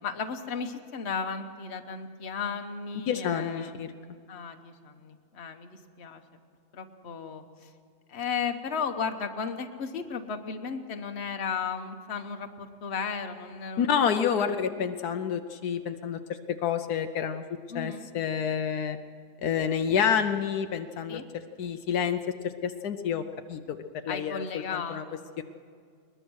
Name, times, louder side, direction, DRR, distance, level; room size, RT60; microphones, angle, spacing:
voice 1, 0.0-3.8 4.3-6.2 6.7-7.7 8.1-13.9 14.3-14.6 17.7-18.1 21.1-21.2 24.1-25.2, left 6 dB, 45° left, 6 dB, 1.3 m, -35 dB
voice 2, 3.1-3.9 13.8-16.2 16.6-17.4 17.7-19.0 19.4-21.2 21.6-23.2 23.5-23.8 24.0-24.5 24.7-25.0 25.4-25.5, left 7 dB, 75° left, 7 dB, 1.3 m, -28 dB
21.5 x 20.5 x 6.3 m, 2.2 s
omnidirectional pair, 1.7 m